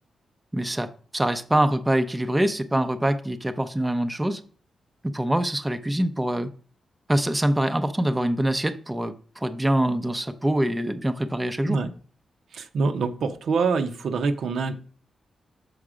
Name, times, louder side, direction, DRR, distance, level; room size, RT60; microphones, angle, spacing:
voice 1, 0.5-0.9 1.1-4.4 5.1-6.5 7.1-11.8, right 1 dB, 15° right, 0.5 m, -24 dB
voice 2, 12.5-14.8, right 4 dB, 75° right, 0.7 m, -25 dB
6.4 x 4.8 x 4.9 m
cardioid pair, 85°, 0 cm